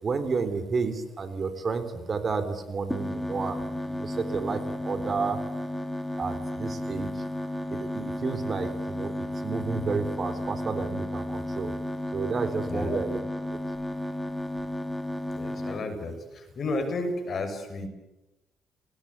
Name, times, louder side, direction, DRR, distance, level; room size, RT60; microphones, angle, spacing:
voice 1, 0.0-5.4 6.2-7.2 7.7-11.7 12.1-13.2 13.5-13.6, right 4 dB, 40° right, 11 dB, 4.0 m, -31 dB
sound 1, 2.9-15.8, left 1 dB, 5° left, 3.3 m, -33 dB
voice 2, 12.6-13.0 15.3-17.9, left 2 dB, 50° left, 6 dB, 7.3 m, -32 dB
29.5 x 20.0 x 8.6 m, 0.98 s
cardioid pair, 90°, 0 cm